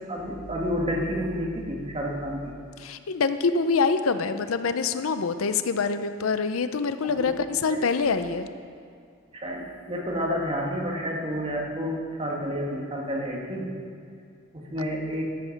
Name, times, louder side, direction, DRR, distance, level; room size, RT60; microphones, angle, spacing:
voice 1, 0.1-2.5 7.0-7.3 7.7-7.9 9.3-13.7 14.5-15.3, equal, 30° right, -2 dB, 1.8 m, -30 dB
voice 2, 2.8-8.5, left 4 dB, 85° left, 11 dB, 0.6 m, -25 dB
12.5 x 7.8 x 5.9 m, 2.3 s
head